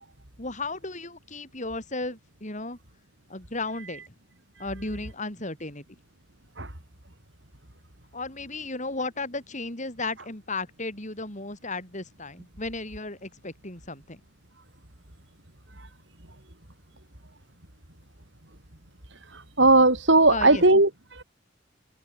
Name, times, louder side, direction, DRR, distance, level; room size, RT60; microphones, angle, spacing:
voice 1, 0.4-2.8 3.3-4.0 4.6-5.8 8.1-14.2 20.3-20.6, left 3 dB, 40° left, 7.3 m, -34 dB
voice 2, 19.3-21.2, right 2 dB, 65° right, 5.2 m, -19 dB
open air
head